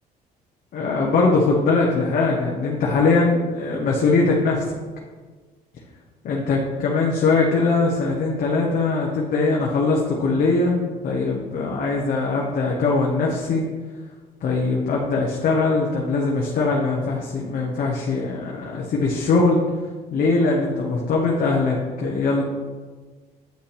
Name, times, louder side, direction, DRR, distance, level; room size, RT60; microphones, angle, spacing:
voice 1, 0.7-4.6 6.2-13.7 14.4-19.6 20.1-22.4, left 3 dB, 55° left, -2 dB, 1.2 m, -21 dB
9.1 x 5.5 x 3.4 m, 1.4 s
cardioid pair, 110°, 17 cm